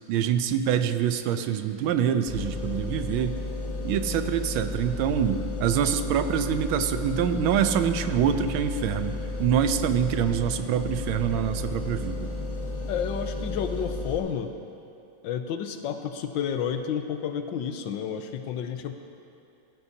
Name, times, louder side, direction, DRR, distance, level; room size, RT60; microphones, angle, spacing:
voice 1, 0.1-3.4 3.8-12.3, right 8 dB, 90° right, 9 dB, 1.5 m, -25 dB
sound 1, 2.3-14.2, left 2 dB, 20° left, 1.3 m, -33 dB
voice 2, 12.9-14.5 15.2-18.9, left 8 dB, 75° left, 7 dB, 1.4 m, -30 dB
16.5 x 14.5 x 2.8 m, 2.7 s
omnidirectional pair, 2.2 m